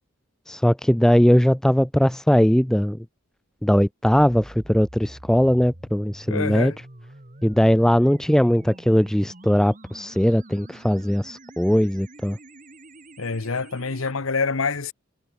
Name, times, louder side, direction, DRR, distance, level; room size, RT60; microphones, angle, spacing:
voice 1, 0.5-3.0 3.6-6.7 7.4-12.4, equal, 5° left, 0.3 m, -19 dB
sound 1, 4.1-14.1, right 1 dB, 40° right, 2.1 m, -46 dB
voice 2, 6.3-6.8 13.2-14.9, left 4 dB, 80° left, 1.1 m, -26 dB
head